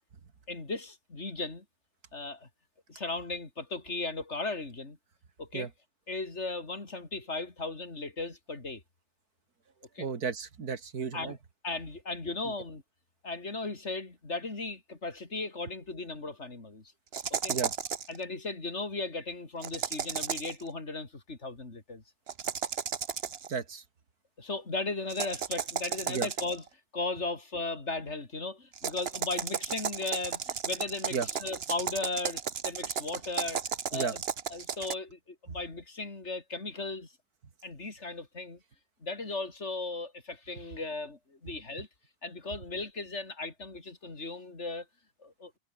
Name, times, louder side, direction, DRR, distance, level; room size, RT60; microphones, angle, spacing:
voice 1, 0.5-1.6 2.1-2.5 2.9-5.0 5.4-5.7 6.1-8.8 10.0-10.1 11.1-11.4 11.6-12.8 13.2-16.9 17.3-17.6 18.1-22.0 24.4-26.6 26.9-33.6 33.9-34.2 34.5-37.1 37.6-38.6 39.0-41.9 42.2-44.9 45.2-45.5, left 3 dB, 40° left, 3.7 m, -36 dB
voice 2, 10.0-11.4 12.4-12.5 17.5-17.7 23.5-23.8 26.1-26.3 31.1-31.3 33.9-34.2, right 5 dB, 65° right, 2.5 m, -33 dB
sound 1, 17.1-18.2 19.6-20.6 22.3-23.5 25.1-26.7 28.7-34.9, right 7 dB, 45° right, 1.1 m, -34 dB
omnidirectional pair, 1.7 m